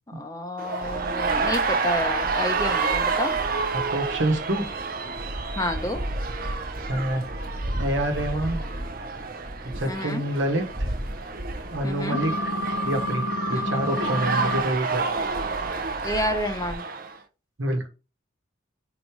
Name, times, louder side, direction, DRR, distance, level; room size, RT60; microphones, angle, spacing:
voice 1, 0.1-3.4 5.6-6.1 9.9-10.2 11.8-12.2 13.5-13.8 16.0-16.8, left 1 dB, 15° left, 6 dB, 0.8 m, -29 dB
sound 1, 0.6-17.2, right 4 dB, 45° right, 0.7 m, -30 dB
sound 2, 0.8-16.7, right 1 dB, 30° right, 1.2 m, -36 dB
voice 2, 3.7-4.6 6.9-7.2 7.8-8.6 9.7-10.9 11.7-12.3 12.8-13.2 13.5-15.2 17.6-17.9, right 1 dB, 70° right, 5 dB, 1.3 m, -27 dB
sound 3, 12.1-14.6, equal, 60° left, 0.9 m, -28 dB
5.0 x 4.0 x 4.6 m, 0.31 s
head